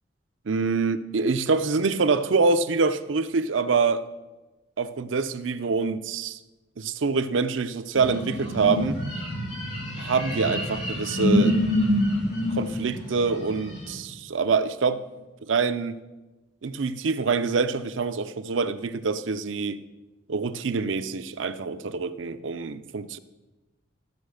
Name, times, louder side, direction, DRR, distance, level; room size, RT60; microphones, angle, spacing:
voice 1, 0.5-4.1 4.8-6.4 6.8-9.0 10.0-11.6 12.5-15.0 15.4-16.0 16.6-19.8 20.3-23.2, right 4 dB, 85° right, 11 dB, 0.6 m, -25 dB
sound 1, 7.9-13.9, left 1 dB, 30° left, 3.7 m, -26 dB
13.5 x 5.5 x 6.4 m, 1.1 s
head